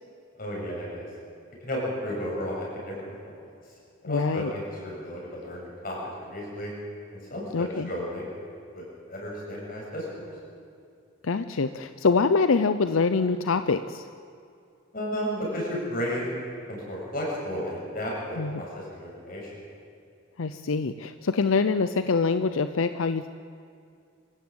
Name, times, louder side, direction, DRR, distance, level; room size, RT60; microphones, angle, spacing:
voice 1, 0.4-1.1 1.6-3.4 4.0-6.7 7.1-8.2 8.7-10.3 14.9-16.4 16.7-19.5, equal, 45° left, -3 dB, 7.7 m, -33 dB
voice 2, 4.0-4.5 7.5-7.9 11.2-14.1 18.4-18.6 20.4-23.3, left 4 dB, 85° left, 11 dB, 0.6 m, -25 dB
25.0 x 16.0 x 8.9 m, 2.4 s
head